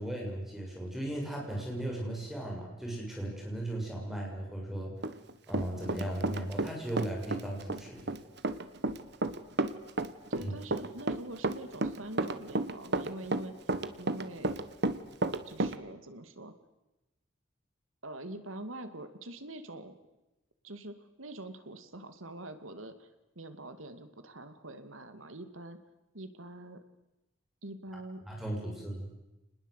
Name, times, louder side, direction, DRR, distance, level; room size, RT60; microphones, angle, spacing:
voice 1, 0.0-4.9 5.5-8.1 10.4-10.5 28.3-29.1, right 1 dB, ahead, -1 dB, 7.0 m, -36 dB
Run, 5.0-6.7 7.0-15.8, right 2 dB, 55° right, 1.4 m, -31 dB
voice 2, 10.3-13.5 13.9-14.5 15.5-16.5 18.0-20.0 20.6-23.1 23.4-25.8 26.1-26.8 27.6-28.2, right 1 dB, 80° right, 10 dB, 2.5 m, -44 dB
29.0 x 20.5 x 8.3 m, 1.0 s
head